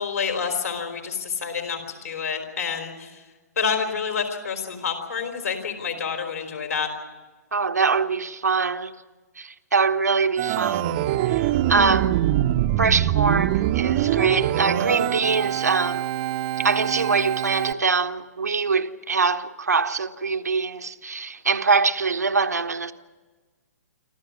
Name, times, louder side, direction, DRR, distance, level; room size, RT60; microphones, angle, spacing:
voice 1, 0.0-3.2 3.6-6.9, left 6 dB, 65° left, 4.5 m, -28 dB
voice 2, 7.5-9.0 9.4-10.9 11.3-12.2 12.8-16.1 16.6-22.9, right 4 dB, 75° right, 1.2 m, -23 dB
Organ, 10.4-17.7, right 13 dB, 35° right, 0.9 m, -24 dB
26.5 x 14.0 x 9.7 m
figure-of-eight pair, 120°, 9 cm